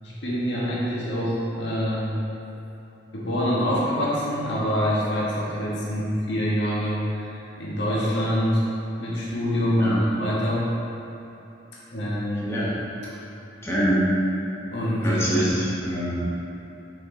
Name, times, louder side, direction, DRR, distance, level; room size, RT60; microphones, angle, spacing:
voice 1, 0.0-2.1 3.1-8.6 9.0-10.7 11.9-12.5 14.7-15.4, equal, 90° left, -7 dB, 1.5 m, -25 dB
voice 2, 13.6-14.1 15.0-16.2, equal, 15° left, -8 dB, 1.4 m, -24 dB
5.8 x 5.3 x 3.9 m, 2.9 s
head